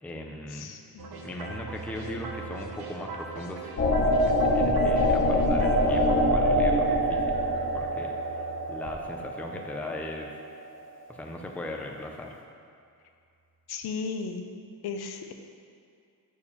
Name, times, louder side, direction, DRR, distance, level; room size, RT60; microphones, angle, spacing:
voice 1, 0.0-0.7 1.2-3.7 4.0-10.3 11.1-12.3, left 1 dB, 5° left, 1 dB, 0.4 m, -39 dB
voice 2, 0.5-1.1 13.7-14.5 14.8-15.3, left 5 dB, 80° left, 6 dB, 0.7 m, -35 dB
sound 1, 1.0-10.2, right 3 dB, 70° right, 0.9 m, -41 dB
sound 2, 3.8-10.4, equal, 30° left, 0.8 m, -25 dB
6.9 x 4.7 x 5.5 m, 2.4 s
wide cardioid pair, 170°, 38 cm